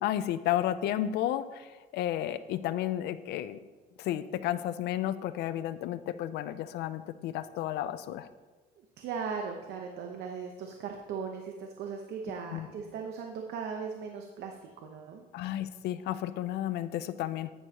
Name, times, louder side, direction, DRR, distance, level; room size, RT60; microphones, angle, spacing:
voice 1, 0.0-3.6 4.0-8.3 12.5-12.7 15.3-17.5, left 12 dB, 80° left, 13 dB, 0.6 m, -32 dB
voice 2, 8.8-15.2, right 6 dB, 75° right, 3 dB, 1.0 m, -38 dB
11.0 x 9.4 x 2.9 m, 1.3 s
cardioid pair, 110°, 17 cm